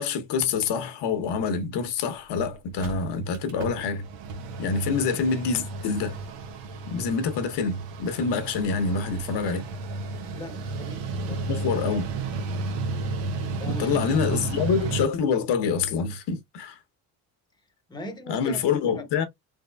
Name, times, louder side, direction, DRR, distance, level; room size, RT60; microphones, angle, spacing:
voice 1, 0.0-4.1 4.6-6.2 6.9-9.6 11.5-12.1 13.7-16.8 18.3-19.3, left 5 dB, 70° left, 0.9 m, -26 dB
Mechanical fan, 2.0-2.1 2.4-2.5 2.7-15.0, right 3 dB, 85° right, 1.1 m, -33 dB
voice 2, 10.3-12.0 13.6-14.2 17.9-18.6 18.9-19.0, left 1 dB, 10° left, 0.8 m, -39 dB
3.5 x 3.5 x 2.2 m
cardioid pair, 95°, 42 cm